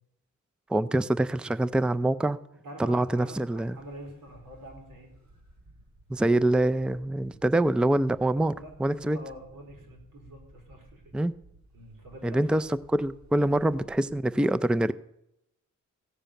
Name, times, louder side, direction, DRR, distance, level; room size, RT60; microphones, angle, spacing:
voice 1, 0.7-2.4 2.8-3.8 6.1-8.5 8.8-9.2 11.1-11.3 12.2-14.9, right 1 dB, 5° right, 15 dB, 0.5 m, -25 dB
voice 2, 2.6-5.1 8.5-11.0 11.7-12.6, equal, 90° right, 1 dB, 4.5 m, -46 dB
sound 1, 3.5-14.2, right 1 dB, 60° right, 3.7 m, -56 dB
15.5 x 6.8 x 9.0 m, 0.82 s
cardioid pair, 75°, 32 cm